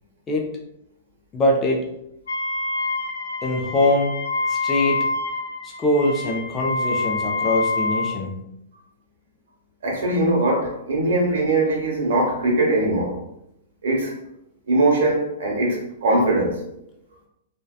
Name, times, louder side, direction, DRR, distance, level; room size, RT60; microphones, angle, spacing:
voice 1, 1.3-1.8 3.4-4.1 4.5-5.0 5.6-8.3, left 1 dB, 15° left, 0 dB, 0.3 m, -22 dB
Wind instrument woodwind instrument, 2.3-8.2, left 3 dB, 85° left, 0.7 m, -26 dB
voice 2, 9.8-13.2 13.8-14.1 14.7-16.6, right 2 dB, 75° right, -1 dB, 0.9 m, -21 dB
2.6 x 2.2 x 2.3 m, 0.81 s
hypercardioid pair, 170°, 0 cm